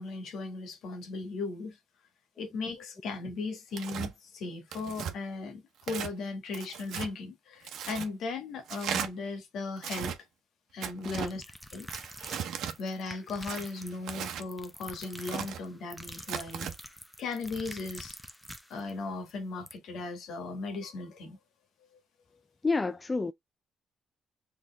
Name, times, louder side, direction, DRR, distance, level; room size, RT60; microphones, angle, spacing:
voice 1, 0.0-1.8 2.4-10.2 10.7-11.4 11.7-11.9 12.8-16.7 17.2-18.1 18.7-21.4, left 3 dB, 75° left, 1.6 m, -37 dB
Tearing, 3.7-4.1 4.7-5.1 5.8-6.1 6.5-7.1 7.6-8.1 8.7-9.1 9.8-10.2 10.8-11.3 11.9-12.8 13.5-14.5 15.0-15.6 16.2-16.7, right 8 dB, 80° right, 0.9 m, -37 dB
sound 1, 11.2-18.9 19.3-19.4 19.7-19.8, equal, 5° left, 0.8 m, -47 dB
voice 2, 22.6-23.3, left 3 dB, 25° left, 0.4 m, -29 dB
4.1 x 3.4 x 3.4 m
cardioid pair, 90°, 0 cm